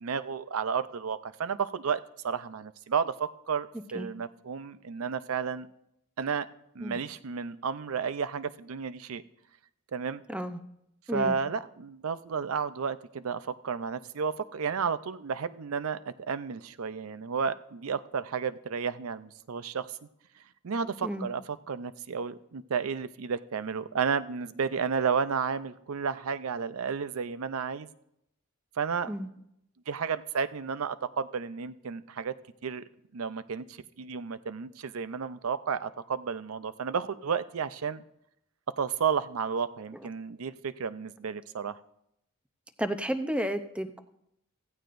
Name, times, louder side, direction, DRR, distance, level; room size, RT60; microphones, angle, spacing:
voice 1, 0.0-5.7 6.2-6.5 6.7-9.2 9.9-10.2 11.1-19.9 20.6-21.4 21.7-27.9 28.8-29.1 29.9-32.3 32.6-32.8 33.1-38.0 38.8-41.8, right 6 dB, 70° right, 14 dB, 0.5 m, -32 dB
voice 2, 10.3-10.6 11.1-11.4 21.0-21.3 29.1-29.3 42.8-44.0, equal, 5° right, 9 dB, 0.6 m, -32 dB
16.0 x 15.0 x 2.6 m, 0.80 s
head